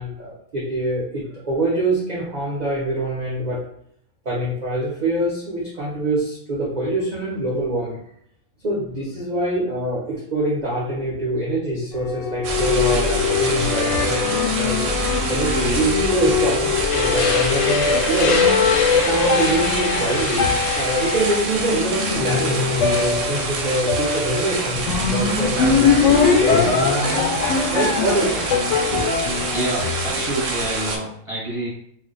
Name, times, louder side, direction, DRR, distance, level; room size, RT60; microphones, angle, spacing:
voice 1, 0.0-3.6 4.2-8.0 8.6-14.8 15.3-18.5 19.0-20.5 20.8-26.8 27.7-28.4 28.9-29.1, right 1 dB, 50° right, -5 dB, 0.5 m, -24 dB
sound 1, 11.9-30.5, left 5 dB, 65° left, 0.8 m, -22 dB
sound 2, 12.4-31.0, right 3 dB, 65° right, 0.8 m, -26 dB
sound 3, 16.9-22.2, left 4 dB, 90° left, 1.1 m, -28 dB
voice 2, 29.4-31.7, right 2 dB, 25° right, -7 dB, 0.9 m, -28 dB
2.4 x 2.1 x 3.9 m, 0.69 s
omnidirectional pair, 1.6 m